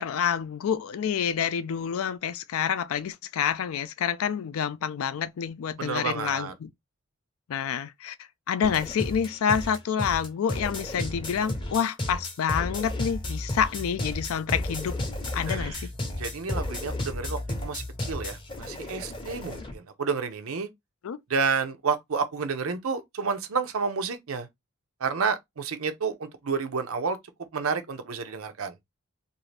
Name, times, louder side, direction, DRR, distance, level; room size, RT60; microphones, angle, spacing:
voice 1, 0.0-6.7 7.5-8.2 8.5-15.0 15.3-15.9 21.0-21.2, left 8 dB, 80° left, 0.4 m, -28 dB
voice 2, 5.8-6.5 15.5-15.9 16.2-20.7 21.3-24.5 25.0-27.2 27.5-28.7, right 5 dB, 80° right, 0.6 m, -30 dB
sound 1, 8.6-19.7, left 1 dB, 25° left, 0.6 m, -33 dB
2.6 x 2.4 x 3.2 m
head